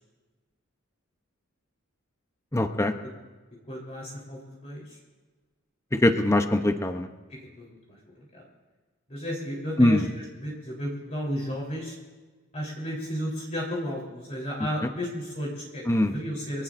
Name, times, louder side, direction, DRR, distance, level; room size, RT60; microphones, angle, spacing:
voice 1, 2.5-2.9 5.9-7.1 9.8-10.0 15.9-16.1, left 1 dB, 15° left, 7 dB, 0.8 m, -22 dB
voice 2, 3.7-5.0 7.3-8.4 9.1-12.0 12.5-16.6, equal, 35° left, -4 dB, 3.7 m, -34 dB
25.0 x 18.0 x 2.6 m, 1.3 s
head